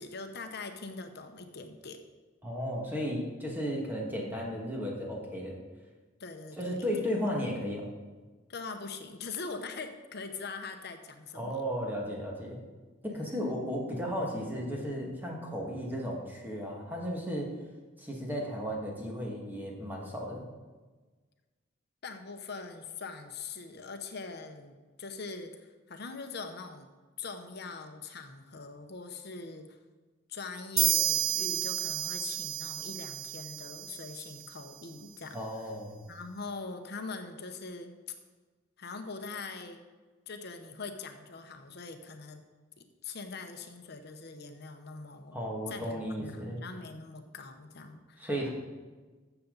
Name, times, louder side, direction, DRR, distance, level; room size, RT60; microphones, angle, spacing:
voice 1, 0.0-2.0 6.2-7.1 8.5-11.6 13.1-13.7 22.0-26.9 27.2-29.8 30.3-35.7 36.0-37.9 38.8-39.8 40.3-42.4 42.8-45.4 45.7-48.2, left 4 dB, 60° left, 6 dB, 0.9 m, -42 dB
voice 2, 2.4-5.6 6.6-7.9 11.4-12.6 13.0-17.5 18.0-20.4 35.3-36.0 45.3-46.6 48.2-48.5, equal, 10° right, -2 dB, 1.9 m, -34 dB
sound 1, 30.8-34.4, right 10 dB, 85° right, 0.9 m, -31 dB
14.0 x 7.0 x 4.0 m, 1.3 s
head